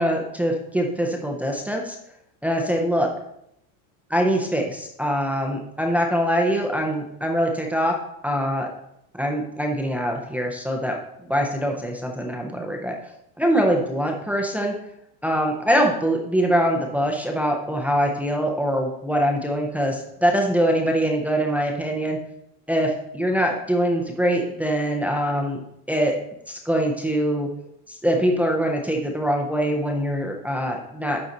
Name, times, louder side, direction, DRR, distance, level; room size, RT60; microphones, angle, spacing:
voice 1, 0.0-2.0 2.4-3.1 4.1-7.9 8.2-8.7 9.1-11.0 11.3-13.0 13.4-14.7 15.2-22.2 22.7-25.6 25.9-26.1 26.5-27.5 27.9-31.2, equal, 5° right, 1 dB, 0.4 m, -23 dB
11.0 x 4.1 x 3.9 m, 0.76 s
supercardioid pair, 155°, 42 cm